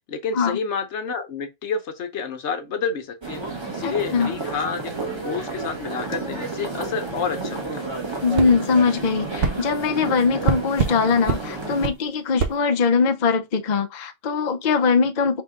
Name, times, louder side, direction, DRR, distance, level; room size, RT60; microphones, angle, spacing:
voice 1, 0.1-3.4 3.7-7.9, left 5 dB, 75° left, 1.1 m, -29 dB
sound 1, 3.2-11.9, right 3 dB, 25° right, 1.2 m, -31 dB
voice 2, 3.8-4.3 8.2-15.4, left 5 dB, 45° left, 0.6 m, -21 dB
sound 2, 8.4-8.5 9.4-9.6 10.5-11.0 11.3-11.4 11.8-12.0 12.4-12.6, right 6 dB, 60° right, 0.8 m, -23 dB
5.7 x 3.6 x 2.3 m
omnidirectional pair, 1.2 m